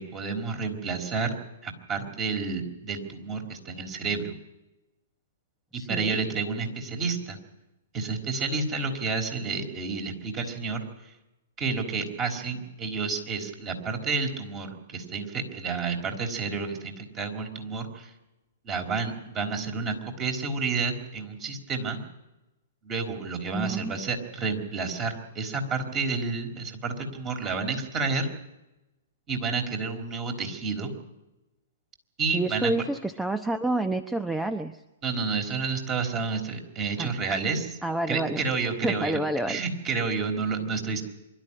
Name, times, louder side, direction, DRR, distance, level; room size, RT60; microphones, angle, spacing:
voice 1, 0.0-1.3 1.6-4.3 5.7-7.4 7.9-10.8 11.6-18.1 18.6-22.0 22.8-28.3 29.3-30.9 32.2-32.7 35.0-37.8 38.1-39.2 39.5-41.0, right 4 dB, 25° right, 4 dB, 4.3 m, -30 dB
voice 2, 5.7-6.2 23.5-23.9 32.3-34.8 37.0-37.1 37.8-38.4 38.8-39.6, right 2 dB, 5° right, 9 dB, 0.9 m, -28 dB
25.0 x 12.5 x 10.0 m, 0.97 s
hypercardioid pair, 120°, 0 cm